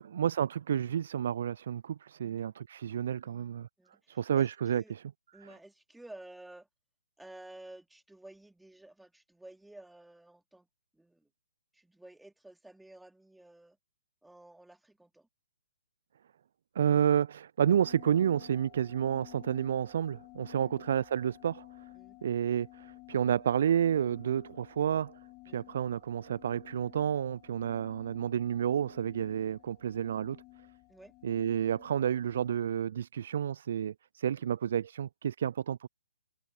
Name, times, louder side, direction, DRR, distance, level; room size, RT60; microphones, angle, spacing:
voice 1, 0.0-3.7 4.1-4.8 16.8-21.7 22.2-25.2 25.5-30.4 31.2-35.9, right 9 dB, 50° right, 0.5 m, -30 dB
voice 2, 2.2-2.5 3.2-4.9 5.3-6.7 7.2-10.7 10.9-11.3 11.7-13.8 14.2-15.3 20.6-20.8 21.9-22.2 25.5-25.7 30.9-31.1 34.4-34.5, right 1 dB, 5° right, 3.0 m, -53 dB
sound 1, 17.6-32.6, left 25 dB, 25° left, 7.3 m, -54 dB
figure-of-eight pair, 130°, 0 cm